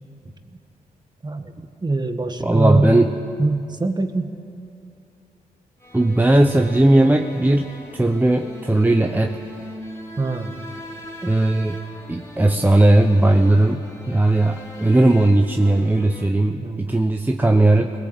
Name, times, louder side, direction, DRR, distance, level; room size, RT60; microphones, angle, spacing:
voice 1, 1.2-3.0 3.4-4.4 10.2-10.6 16.6-16.8, right 2 dB, 30° right, 7 dB, 1.7 m, -23 dB
voice 2, 2.4-3.1 5.9-9.4 11.2-11.8 12.1-17.9, right 2 dB, 10° right, 4 dB, 1.0 m, -17 dB
sound 1, 5.8-16.3, left 1 dB, 15° left, 4.0 m, -40 dB
21.0 x 18.5 x 8.2 m, 2.5 s
cardioid pair, 70°, 15 cm